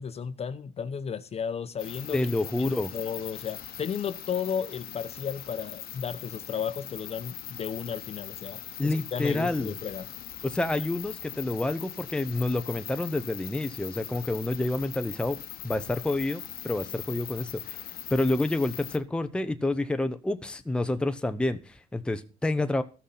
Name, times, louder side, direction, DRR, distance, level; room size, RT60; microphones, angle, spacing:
voice 1, 0.0-2.2 2.6-10.1, left 7 dB, 35° left, 13 dB, 0.9 m, -34 dB
sound 1, 1.8-19.0, left 11 dB, 65° left, 1.1 m, -41 dB
voice 2, 2.1-2.9 8.8-9.7 10.4-15.4 15.6-22.8, left 2 dB, 5° left, 9 dB, 0.8 m, -28 dB
14.0 x 6.4 x 5.7 m, 0.35 s
cardioid pair, 110°, 17 cm